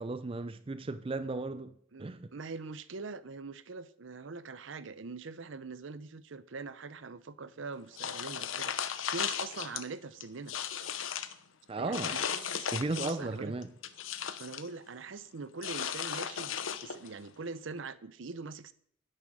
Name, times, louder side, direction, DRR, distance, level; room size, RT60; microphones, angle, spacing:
voice 1, 0.0-2.3 11.7-12.2 12.7-13.7, right 3 dB, 30° right, 0.5 m, -35 dB
voice 2, 1.9-10.5 11.8-12.7 12.9-13.5 14.4-18.7, right 4 dB, 70° right, 0.7 m, -43 dB
sound 1, 8.0-9.8 10.2-11.3 11.9-13.3 13.6-14.7 15.6-17.1, left 8 dB, 80° left, 0.9 m, -36 dB
9.8 x 9.7 x 6.3 m
head